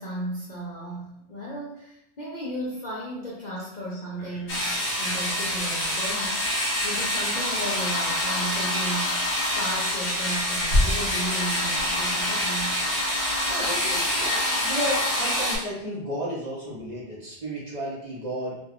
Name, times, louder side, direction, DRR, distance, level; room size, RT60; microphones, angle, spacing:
voice 1, 0.0-4.7 5.0-6.4 6.8-12.8, right 1 dB, 55° left, -5 dB, 0.5 m, -34 dB
sound 1, 4.5-15.6, left 1 dB, 35° left, 0.9 m, -26 dB
voice 2, 13.4-18.6, equal, 45° right, -5 dB, 0.7 m, -33 dB
2.4 x 2.2 x 3.4 m, 0.80 s
omnidirectional pair, 1.2 m